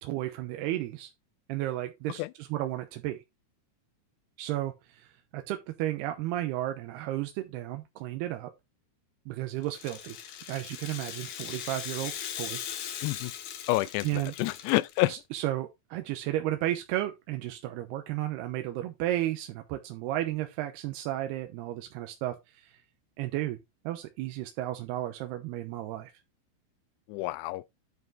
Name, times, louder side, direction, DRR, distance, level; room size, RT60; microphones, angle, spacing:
voice 1, 0.0-1.1 1.5-3.2 4.4-8.5 9.3-10.2 10.5-12.6 14.0-14.3 15.1-22.8 23.2-23.6 23.9-26.1, right 14 dB, 85° right, 2.8 m, -33 dB
Rattle (instrument), 9.6-15.1, left 9 dB, 70° left, 3.3 m, -39 dB
voice 2, 13.7-15.1 27.1-27.6, left 19 dB, 85° left, 2.7 m, -28 dB
9.8 x 5.4 x 3.8 m
omnidirectional pair, 4.7 m